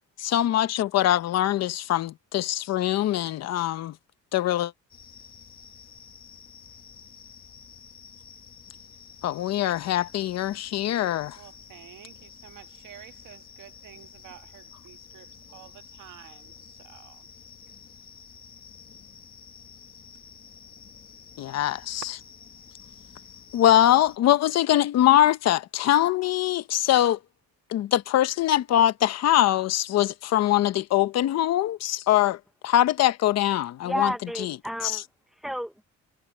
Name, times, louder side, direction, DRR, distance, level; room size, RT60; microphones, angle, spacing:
voice 1, 0.2-3.9 4.3-4.7 9.2-11.4 21.4-22.0 23.5-27.2 27.7-34.1 34.4-34.6 34.8-35.0, left 12 dB, 60° left, 0.9 m, -23 dB
sound 1, 4.9-24.2, left 6 dB, 30° left, 1.3 m, -49 dB
voice 2, 11.3-17.3, right 13 dB, 80° right, 1.9 m, -50 dB
voice 3, 33.8-35.8, equal, ahead, 0.8 m, -32 dB
cardioid pair, 170°, 30 cm